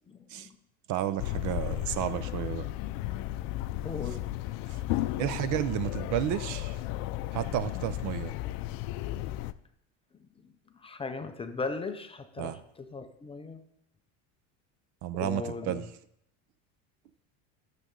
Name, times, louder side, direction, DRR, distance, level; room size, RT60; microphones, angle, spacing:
voice 1, 0.9-2.7 4.0-4.2 4.7-4.8 5.2-6.8 7.3-8.3 12.4-12.6 15.0-15.9, right 12 dB, 50° right, 14 dB, 0.6 m, -32 dB
sound 1, 1.2-9.5, left 15 dB, 60° left, 0.5 m, -34 dB
voice 2, 3.8-4.2 10.8-13.6 15.2-15.8, left 4 dB, 15° left, 6 dB, 0.5 m, -37 dB
14.0 x 6.7 x 3.8 m, 0.76 s
cardioid pair, 140°, 40 cm